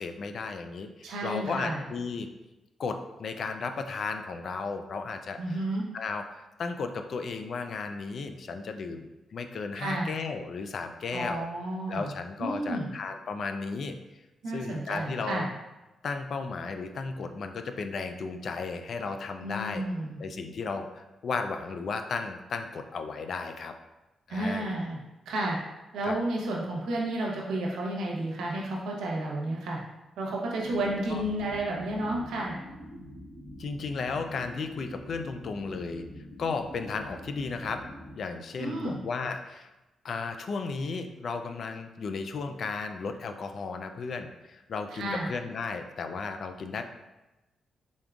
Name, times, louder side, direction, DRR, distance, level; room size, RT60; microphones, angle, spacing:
voice 1, 0.0-2.3 2.8-5.6 5.9-11.5 11.9-13.9 14.5-15.5 16.0-19.8 20.2-23.7 24.3-24.8 26.0-26.2 31.1-31.2 33.6-36.0 36.4-37.8 38.1-39.7 40.0-46.8, left 4 dB, 60° left, 7 dB, 0.3 m, -34 dB
voice 2, 1.0-1.8 5.4-5.8 9.8-10.1 11.1-12.1 12.4-12.9 14.4-15.5 19.4-20.2 24.3-25.0 25.3-25.6 25.9-29.8 30.2-32.6 38.6-39.0 44.9-45.3, right 1 dB, 90° right, -2 dB, 0.8 m, -31 dB
sound 1, 30.6-38.1, equal, 40° left, 1.3 m, -45 dB
3.8 x 3.6 x 2.4 m, 1.0 s
cardioid pair, 95°, 0 cm